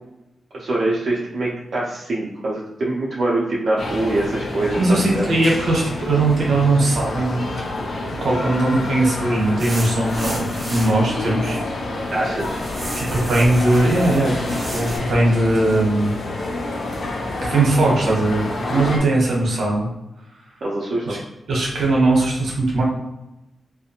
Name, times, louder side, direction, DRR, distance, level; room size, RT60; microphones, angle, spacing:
voice 1, 0.5-5.2 12.1-12.6 18.7-19.0 20.6-21.2, right 2 dB, 50° right, -6 dB, 0.5 m, -24 dB
sound 1, 3.8-19.0, left 2 dB, 60° left, 0.4 m, -28 dB
voice 2, 4.8-7.5 7.8-11.6 12.9-16.1 17.4-19.9 21.1-21.2 21.5-22.8, right 2 dB, 75° right, -3 dB, 0.9 m, -19 dB
sound 2, 9.6-11.0 11.6-12.1 12.4-15.0, right 1 dB, 25° right, 0.8 m, -33 dB
2.4 x 2.1 x 2.8 m, 0.93 s
wide cardioid pair, 100°, 0 cm